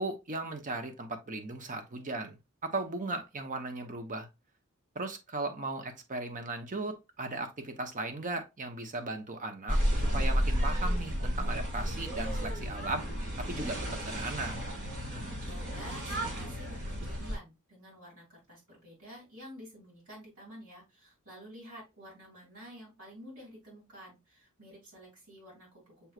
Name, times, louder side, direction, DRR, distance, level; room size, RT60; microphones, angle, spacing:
voice 1, 0.0-2.4 2.6-4.3 4.9-13.1 13.4-13.8 14.1-14.6, right 2 dB, 35° right, 0.9 m, -37 dB
sound 1, 9.7-17.4, equal, 55° right, 2.6 m, -32 dB
voice 2, 15.4-26.1, equal, 70° right, 3.1 m, -50 dB
6.8 x 3.1 x 2.4 m
head